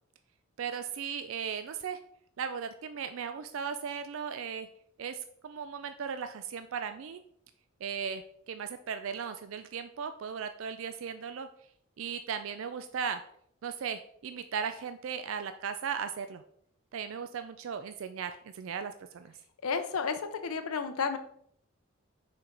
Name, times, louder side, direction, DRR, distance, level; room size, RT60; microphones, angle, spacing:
voice 1, 0.6-2.0 2.4-4.7 5.0-7.2 7.8-8.2 8.5-11.5 12.0-13.2 13.6-16.4 16.9-19.3, right 7 dB, 65° right, 9 dB, 0.4 m, -37 dB
voice 2, 19.6-21.2, left 5 dB, 85° left, 7 dB, 0.6 m, -32 dB
6.4 x 4.6 x 3.8 m, 0.68 s
head